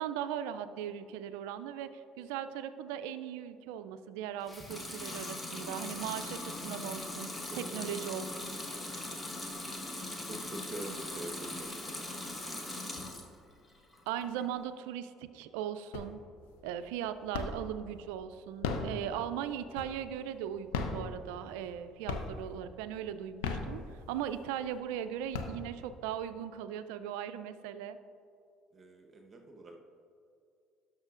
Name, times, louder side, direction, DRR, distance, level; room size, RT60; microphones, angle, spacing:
voice 1, 0.0-7.3 7.5-8.6 14.1-16.2 16.6-28.0, right 9 dB, 80° right, 11 dB, 0.3 m, -38 dB
Water tap faucet / Sink (filling or washing) / Liquid, 4.4-13.3 13.7-14.5, left 1 dB, 20° left, 1.2 m, -40 dB
voice 2, 7.5-7.8 10.2-11.7 28.7-29.8, right 2 dB, 35° right, 2 dB, 1.0 m, -45 dB
sound 1, 15.9-16.4 16.8-17.8 18.4-20.2 20.6-21.8 22.1-22.6 23.2-24.3 24.8-24.9 25.1-26.0, left 4 dB, 85° left, 0.6 m, -36 dB
12.5 x 6.1 x 2.5 m, 2.5 s
hypercardioid pair, 70°, 0 cm